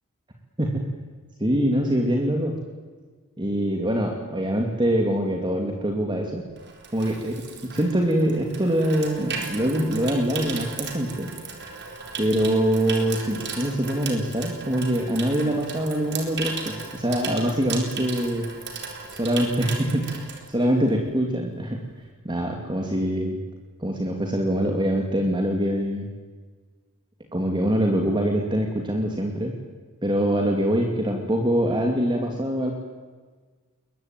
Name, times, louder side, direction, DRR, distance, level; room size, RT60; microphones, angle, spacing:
voice 1, 1.4-2.5 3.4-6.4 6.9-11.3 12.2-18.5 19.1-21.8 22.2-23.4 23.8-26.1 27.3-29.5 30.0-32.7, right 1 dB, 20° right, 1 dB, 2.5 m, -24 dB
Water tap faucet / Sink (filling or washing), 6.0-21.1 21.4-21.7, right 5 dB, 55° right, 4.1 m, -36 dB
21.5 x 21.5 x 9.0 m, 1.4 s
head